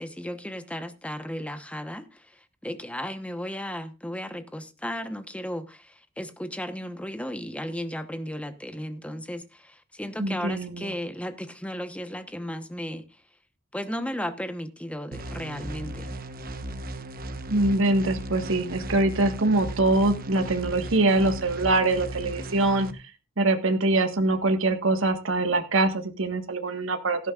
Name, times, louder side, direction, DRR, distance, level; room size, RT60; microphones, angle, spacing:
voice 1, 0.0-2.1 2.6-13.0 13.7-16.1, equal, 5° left, 1.1 m, -35 dB
voice 2, 10.2-10.9 17.5-22.9 23.4-27.3, right 2 dB, 70° right, 1.6 m, -23 dB
sound 1, 15.1-22.9, right 1 dB, 45° right, 1.1 m, -36 dB
17.0 x 12.5 x 2.5 m
head